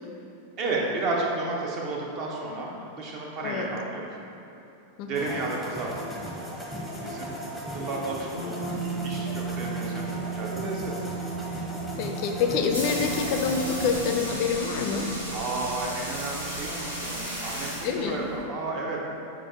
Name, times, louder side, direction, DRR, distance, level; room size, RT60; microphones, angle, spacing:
voice 1, 0.6-4.0 5.0-11.1 15.3-19.0, right 3 dB, 40° right, -2 dB, 0.7 m, -33 dB
sound 1, 5.1-14.0, equal, ahead, 0.7 m, -37 dB
sound 2, 8.3-18.1, right 6 dB, 60° right, 1.2 m, -37 dB
voice 2, 12.0-15.1 17.8-18.2, left 6 dB, 45° left, 4 dB, 0.4 m, -27 dB
sound 3, 12.4-18.4, equal, 80° right, 1.1 m, -35 dB
6.0 x 2.4 x 3.6 m, 2.9 s
figure-of-eight pair, 90°, 0 cm